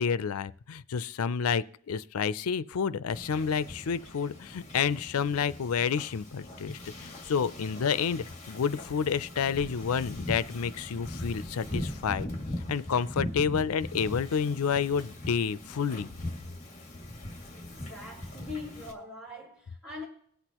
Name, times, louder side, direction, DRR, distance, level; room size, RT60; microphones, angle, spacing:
voice 1, 0.0-12.3 12.7-16.1, left 6 dB, 90° left, 0.5 m, -29 dB
Wind / Ocean, 3.1-18.9, left 1 dB, 30° left, 2.2 m, -40 dB
voice 2, 17.5-20.1, left 3 dB, 5° right, 3.9 m, -42 dB
22.0 x 8.1 x 2.9 m
head